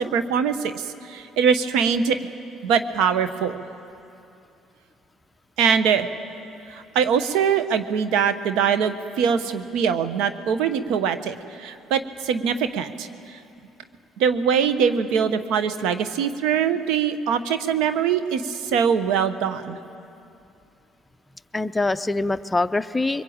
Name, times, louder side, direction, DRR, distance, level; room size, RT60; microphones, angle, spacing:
voice 1, 0.0-2.2 2.6-3.6 5.6-6.1 6.7-13.4 14.2-19.8, right 7 dB, 80° right, 11 dB, 1.0 m, -23 dB
voice 2, 21.5-23.2, left 2 dB, 15° left, 12 dB, 0.6 m, -24 dB
23.0 x 20.5 x 8.7 m, 2.7 s
supercardioid pair, 80°, 0 cm